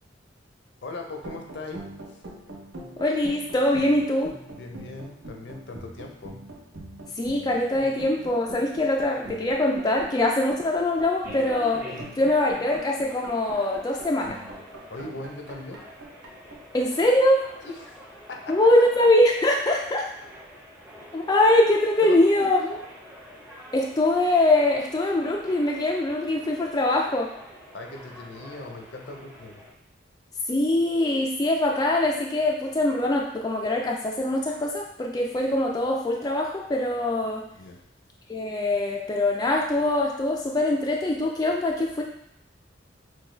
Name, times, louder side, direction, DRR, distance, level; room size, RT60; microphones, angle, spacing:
voice 1, 0.8-1.8 2.1-2.2 4.6-6.4 11.9-12.1 14.9-15.9 17.6-17.9 18.3-18.7 22.0-22.8 27.7-29.6 37.6-37.8, left 2 dB, 65° left, 2 dB, 0.6 m, -38 dB
sound 1, 1.2-18.0, right 1 dB, 75° right, 0.9 m, -43 dB
voice 2, 3.0-4.3 7.2-11.9 12.2-14.4 16.7-17.4 18.5-20.1 21.1-22.6 23.7-27.3 30.5-37.5 38.3-42.0, left 1 dB, 20° left, -1 dB, 0.4 m, -23 dB
sound 2, 11.2-29.7, equal, 10° right, 0.7 m, -46 dB
6.2 x 2.3 x 3.2 m, 0.78 s
head